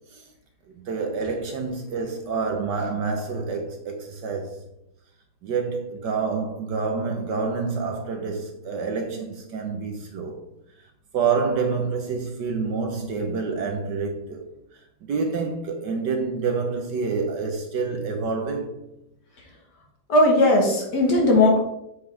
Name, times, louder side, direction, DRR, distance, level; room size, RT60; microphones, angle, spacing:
voice 1, 0.8-4.6 5.4-10.4 11.1-14.5 15.0-18.8, right 4 dB, 65° right, 1.3 m, -27 dB
voice 2, 20.1-21.6, left 2 dB, 55° left, 2.1 m, -17 dB
8.0 x 5.5 x 3.4 m
omnidirectional pair, 2.3 m